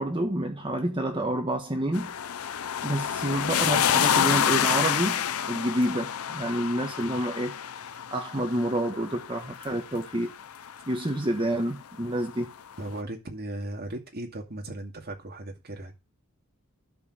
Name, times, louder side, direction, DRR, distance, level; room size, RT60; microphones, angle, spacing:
voice 1, 0.0-2.1 2.5-7.5 8.1-10.3 10.9-12.5, right 1 dB, 25° right, 1.4 m, -28 dB
sound 1, 1.9-11.0 12.3-12.4, left 9 dB, 80° left, 0.5 m, -28 dB
voice 2, 12.8-15.9, right 1 dB, 45° right, 2.4 m, -37 dB
12.0 x 4.7 x 6.2 m
head